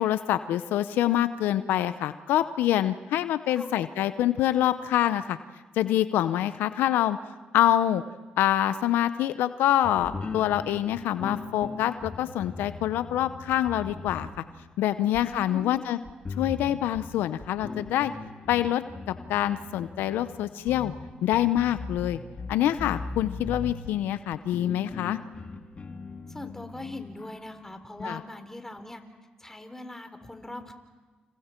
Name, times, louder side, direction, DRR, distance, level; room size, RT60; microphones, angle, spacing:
voice 1, 0.0-5.4 5.8-7.2 7.5-8.0 8.4-14.3 14.8-16.0 16.4-18.1 18.5-20.9 21.2-22.2 22.5-25.2 28.0-28.2, left 12 dB, 85° left, 13 dB, 0.7 m, -26 dB
sound 1, 9.8-14.8 15.1-15.2 16.0-28.1, left 3 dB, 40° left, 2.3 m, -39 dB
voice 2, 15.0-15.9 26.3-29.0 29.4-30.7, left 2 dB, 10° left, 7 dB, 3.6 m, -41 dB
29.5 x 28.5 x 4.5 m, 1.3 s
supercardioid pair, 55°, 3 cm